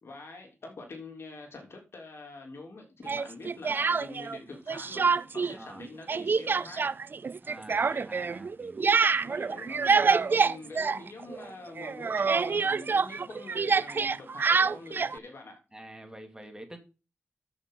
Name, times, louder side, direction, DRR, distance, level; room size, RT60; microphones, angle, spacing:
voice 1, 0.0-6.9 7.7-8.1 9.2-15.6, left 3 dB, 60° left, 3.1 m, -45 dB
Speech, 3.1-4.4 4.7-5.5 5.8-11.5 11.8-15.2, right 5 dB, 45° right, 0.4 m, -26 dB
voice 2, 7.4-8.9 15.7-16.8, right 1 dB, 15° right, 2.5 m, -47 dB
13.0 x 6.0 x 3.9 m
cardioid pair, 75°, 5 cm